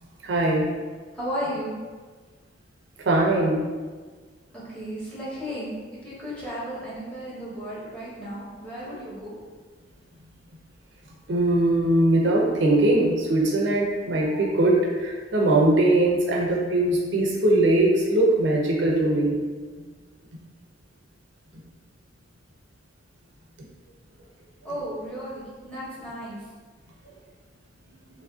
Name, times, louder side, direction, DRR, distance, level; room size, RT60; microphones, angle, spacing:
voice 1, 0.2-0.7 3.1-3.6 11.3-19.4, right 1 dB, 70° right, -2 dB, 0.5 m, -21 dB
voice 2, 1.1-1.7 4.5-5.7 6.0-9.3 24.6-26.4, equal, 5° left, -9 dB, 0.8 m, -34 dB
3.0 x 2.5 x 2.3 m, 1.4 s
head